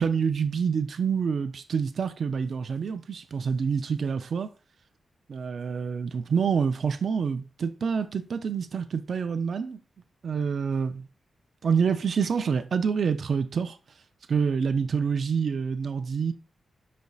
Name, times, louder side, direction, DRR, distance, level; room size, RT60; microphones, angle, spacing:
voice 1, 0.0-4.5 5.3-9.8 10.2-11.1 11.6-13.8 14.3-16.3, right 6 dB, 65° right, 0.4 m, -27 dB
5.2 x 4.1 x 2.3 m
cardioid pair, 80°, 0 cm